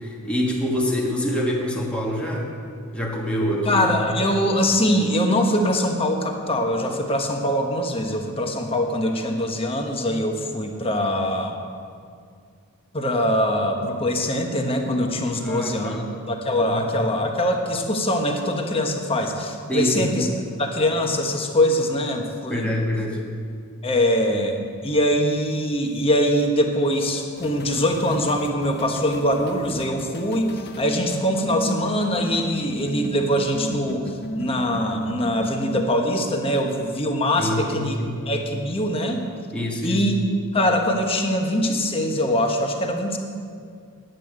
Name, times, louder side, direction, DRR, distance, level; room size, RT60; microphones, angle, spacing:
voice 1, 0.0-2.5 2.9-4.0 15.3-16.1 16.6-16.8 19.7-20.3 22.5-23.2 37.4-38.2 39.5-40.0, equal, 5° left, -2 dB, 1.5 m, -25 dB
voice 2, 3.6-11.6 12.9-20.3 20.6-22.9 23.8-37.9 38.2-39.2 39.8-40.1 40.5-43.2, equal, 25° left, 3 dB, 1.2 m, -23 dB
sound 1, 27.3-35.8, equal, 50° left, 0.8 m, -34 dB
9.2 x 8.4 x 9.3 m, 2.2 s
head